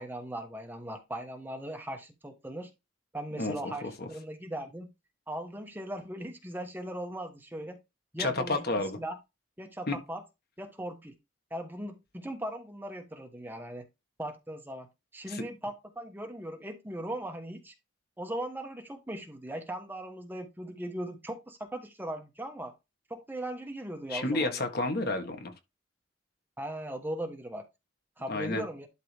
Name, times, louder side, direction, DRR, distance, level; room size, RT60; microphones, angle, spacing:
voice 1, 0.0-2.7 3.1-4.9 5.3-7.8 8.1-8.6 9.0-9.2 9.6-10.2 10.6-11.1 11.5-13.9 14.2-14.9 15.1-17.7 18.2-22.7 23.1-24.7 26.6-27.7 28.2-28.9, right 1 dB, 10° right, 1.2 m, -38 dB
voice 2, 3.3-4.1 8.2-9.0 9.9-10.0 15.3-15.4 24.1-25.5 28.3-28.6, left 2 dB, 55° left, 1.7 m, -31 dB
11.5 x 3.8 x 3.4 m
head